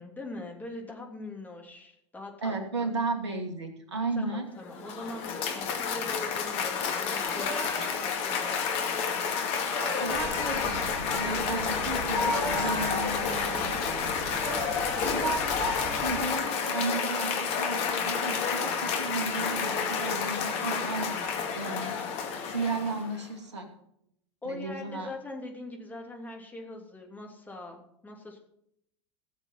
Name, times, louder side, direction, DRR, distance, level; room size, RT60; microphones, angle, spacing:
voice 1, 0.0-2.9 4.2-9.0 24.4-28.4, left 2 dB, 10° left, 1 dB, 3.1 m, -42 dB
voice 2, 2.4-4.4 10.0-15.5 16.0-21.1 21.5-22.0 22.5-23.7 24.4-25.1, right 3 dB, 75° right, 5 dB, 2.6 m, -34 dB
Cheering / Applause, 4.6-23.2, left 6 dB, 45° left, 2.2 m, -30 dB
sound 1, 7.3-8.2 9.6-10.6 12.0-13.2 14.2-15.2, equal, 70° left, 6.5 m, -37 dB
sound 2, 10.1-16.3, equal, 5° right, 4.5 m, -40 dB
18.5 x 7.1 x 5.5 m, 0.74 s
figure-of-eight pair, 85°, 15 cm